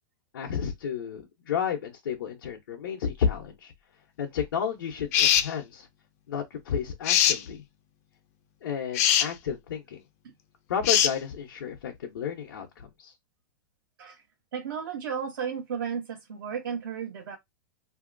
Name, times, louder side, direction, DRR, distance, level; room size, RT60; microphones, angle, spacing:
voice 1, 0.3-3.7 4.2-5.9 6.3-7.6 8.6-10.0 10.7-13.1, left 7 dB, 90° left, 0.8 m, -32 dB
sound 1, 5.1-5.5 7.1-7.4 8.9-9.3 10.8-11.1, left 10 dB, 50° left, 0.4 m, -21 dB
voice 2, 14.5-17.4, right 7 dB, 85° right, 0.8 m, -33 dB
2.9 x 2.7 x 2.5 m
supercardioid pair, 150°, 11 cm